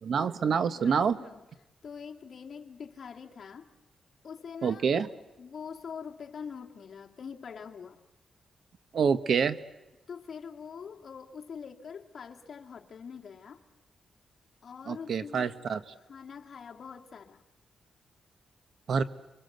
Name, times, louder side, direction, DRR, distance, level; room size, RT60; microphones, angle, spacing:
voice 1, 0.0-1.2 4.6-5.1 8.9-9.6 14.9-15.8 18.9-19.0, right 6 dB, 65° right, 13 dB, 1.1 m, -26 dB
voice 2, 0.8-1.4 1.8-3.7 4.2-5.0 5.4-8.0 10.1-13.6 14.6-15.5 16.1-17.4, left 6 dB, 55° left, 2 dB, 2.3 m, -44 dB
30.0 x 23.5 x 8.0 m, 1.0 s
wide cardioid pair, 125°, 0 cm